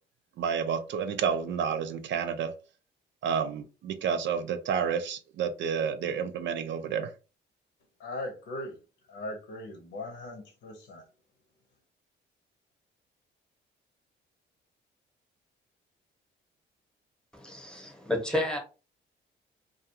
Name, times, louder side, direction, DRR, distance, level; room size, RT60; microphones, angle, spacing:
voice 1, 0.4-2.5 3.2-7.1, right 7 dB, 65° right, 0.4 m, -30 dB
voice 2, 8.0-8.8 9.1-11.0, left 1 dB, 80° left, 0.8 m, -39 dB
voice 3, 17.3-18.6, left 1 dB, 5° left, 0.9 m, -31 dB
2.4 x 2.3 x 2.7 m
cardioid pair, 90°, 20 cm